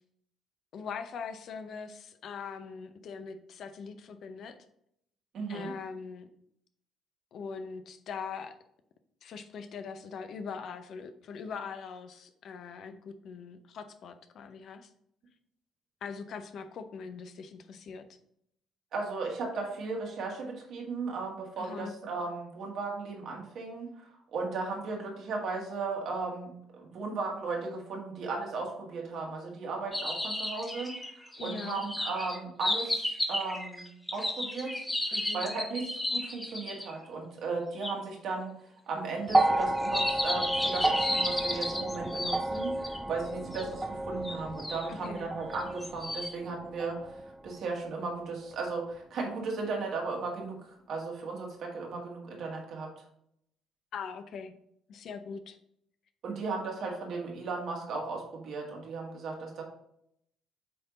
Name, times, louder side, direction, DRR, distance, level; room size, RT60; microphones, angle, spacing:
voice 1, 0.7-4.6 5.5-6.3 7.3-8.6 9.2-14.9 16.0-18.1 21.6-21.9 31.4-31.8 35.1-35.5 44.9-45.3 53.9-54.5 54.9-55.6, left 5 dB, 60° left, 9 dB, 0.6 m, -41 dB
voice 2, 5.3-5.7 18.9-33.9 34.1-34.8 35.3-38.6 38.9-52.9 56.2-59.6, right 3 dB, 60° right, 0 dB, 1.8 m, -36 dB
sound 1, 29.9-36.9 37.8-37.9 39.3-43.0 43.5-43.6 44.2-44.9 45.5-46.3, left 1 dB, 15° left, 1.1 m, -33 dB
sound 2, 39.3-47.6 48.7-48.8, right 2 dB, 15° right, 0.5 m, -32 dB
7.7 x 3.5 x 3.9 m, 0.73 s
hypercardioid pair, 50°, 0 cm